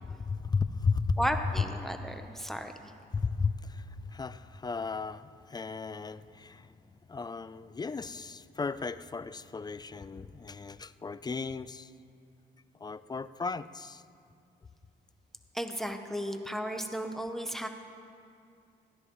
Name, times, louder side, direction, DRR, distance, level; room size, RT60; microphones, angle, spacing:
voice 1, 0.0-1.2 3.1-6.7 7.1-11.9 12.8-14.0, left 4 dB, 20° left, 14 dB, 0.4 m, -35 dB
voice 2, 1.2-2.7 15.5-17.7, equal, ahead, 6 dB, 0.8 m, -34 dB
20.5 x 15.5 x 3.1 m, 2.5 s
cardioid pair, 90°, 19 cm